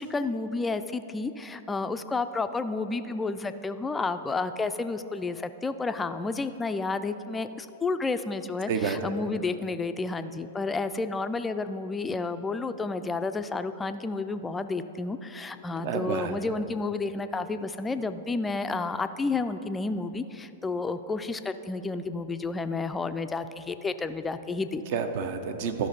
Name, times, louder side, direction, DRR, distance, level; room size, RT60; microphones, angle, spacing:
voice 1, 0.0-24.8, left 3 dB, 10° left, 10 dB, 0.4 m, -31 dB
voice 2, 8.7-9.1 15.8-16.3 24.9-25.9, right 6 dB, 50° right, 7 dB, 0.7 m, -29 dB
13.0 x 5.8 x 4.2 m, 2.9 s
figure-of-eight pair, 100°, 0 cm